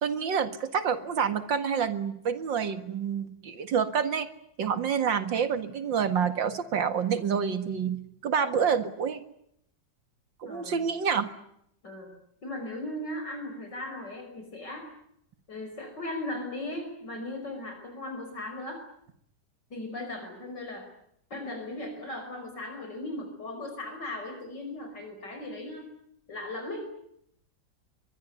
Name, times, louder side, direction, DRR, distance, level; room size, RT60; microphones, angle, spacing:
voice 1, 0.0-4.3 4.6-9.2 10.4-11.3, right 7 dB, 85° right, 10 dB, 2.5 m, -28 dB
voice 2, 10.4-10.8 11.8-12.1 12.4-14.9 15.5-18.8 19.7-20.9 21.3-25.9 26.3-26.9, left 1 dB, 70° left, 4 dB, 6.1 m, -37 dB
23.5 x 22.5 x 9.6 m, 0.73 s
omnidirectional pair, 2.0 m